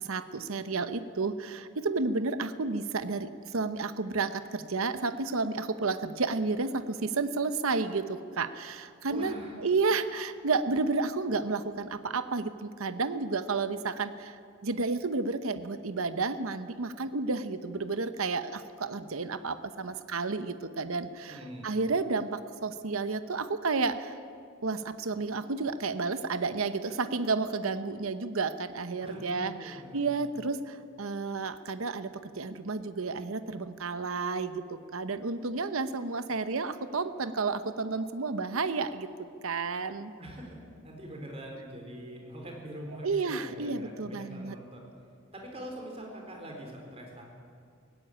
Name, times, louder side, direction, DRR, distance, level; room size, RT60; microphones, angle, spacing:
voice 1, 0.0-24.1 24.6-34.6 34.9-39.1 39.4-40.1 43.0-44.6, right 4 dB, 80° right, 11 dB, 0.9 m, -31 dB
voice 2, 9.1-9.6 21.3-21.7 29.0-30.2 40.2-44.9 45.3-47.2, equal, 30° right, 1 dB, 4.0 m, -43 dB
16.5 x 16.0 x 10.0 m, 2.2 s
head